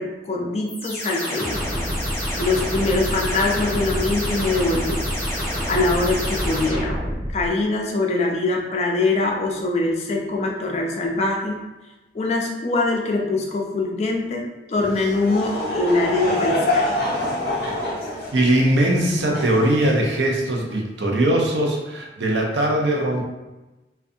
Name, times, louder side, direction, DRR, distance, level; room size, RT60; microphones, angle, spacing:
voice 1, 0.0-1.6 2.3-5.0 5.7-7.0 7.3-11.6 12.1-17.0, left 2 dB, 35° left, 0 dB, 0.4 m, -23 dB
sound 1, 0.7-7.5, equal, 15° left, 0.7 m, -26 dB
sound 2, 3.8-4.3 5.6-5.7 6.3-6.9, equal, 45° right, 0.7 m, -35 dB
Laughter / Crowd, 14.7-20.5, left 1 dB, 55° left, 0.7 m, -26 dB
voice 2, 18.3-23.2, right 1 dB, 85° right, 0 dB, 0.5 m, -20 dB
2.5 x 2.2 x 2.5 m, 1.1 s
head